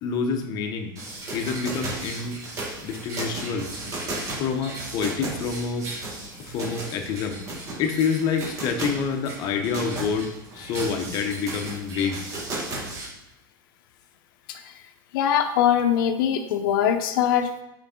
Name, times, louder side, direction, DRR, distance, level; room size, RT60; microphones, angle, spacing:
voice 1, 0.0-0.9 1.3-2.4 2.8-3.7 4.3-5.9 6.4-7.4 7.8-10.3 10.5-12.2, left 5 dB, 35° left, 5 dB, 0.8 m, -27 dB
sound 1, 1.0-13.1, right 2 dB, 25° right, 1.3 m, -35 dB
voice 2, 15.1-17.6, left 9 dB, 70° left, 6 dB, 0.7 m, -22 dB
6.6 x 4.7 x 3.7 m, 0.90 s
supercardioid pair, 155°, 12 cm